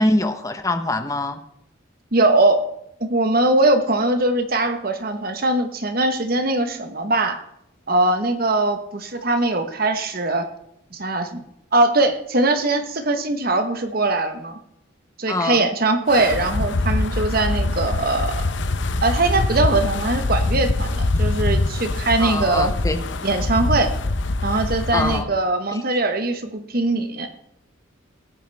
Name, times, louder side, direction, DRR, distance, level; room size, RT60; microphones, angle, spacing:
voice 1, 0.0-1.4 15.3-15.7 22.2-23.0 24.9-25.3 25.7-25.8, left 2 dB, 15° left, 7 dB, 1.0 m, -23 dB
voice 2, 2.1-2.6 3.0-7.4 7.9-10.5 10.9-11.4 11.7-14.6 15.2-18.5 19.0-22.8 23.2-23.9 24.4-27.3, right 2 dB, 45° right, 7 dB, 1.2 m, -21 dB
Wind, 16.1-25.2, left 2 dB, 60° left, 0.8 m, -23 dB
17.5 x 9.4 x 3.5 m, 0.77 s
head